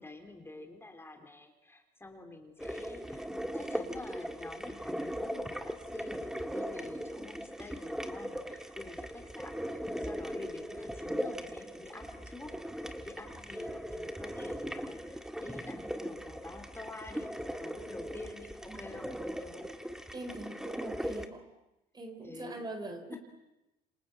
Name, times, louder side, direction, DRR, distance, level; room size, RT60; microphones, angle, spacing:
voice 1, 0.0-19.1 19.4-19.6 22.2-22.6, left 2 dB, 15° left, 4 dB, 3.4 m, -48 dB
sound 1, 2.6-21.3, equal, 5° right, 1.7 m, -39 dB
voice 2, 20.1-21.5 21.9-23.2, right 2 dB, 25° right, 7 dB, 4.1 m, -42 dB
28.0 x 26.0 x 7.7 m, 0.95 s
cardioid pair, 110°, 17 cm